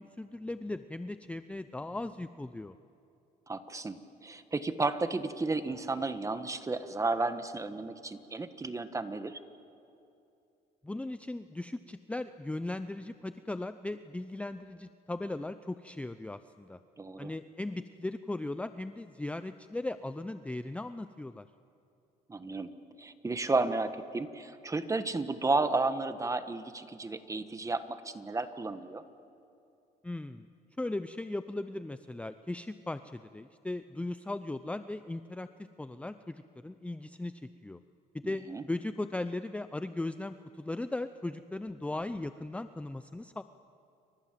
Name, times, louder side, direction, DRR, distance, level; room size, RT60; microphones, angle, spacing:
voice 1, 0.0-2.7 10.8-16.8 17.2-21.4 30.0-30.5 30.8-37.3 37.6-37.8 38.2-43.4, left 2 dB, 5° left, 11 dB, 0.6 m, -38 dB
voice 2, 3.5-9.4 17.0-17.3 22.3-22.7 23.0-29.0 38.2-38.6, right 3 dB, 20° right, 10 dB, 1.5 m, -33 dB
29.5 x 24.5 x 7.6 m, 2.7 s
cardioid pair, 110°, 17 cm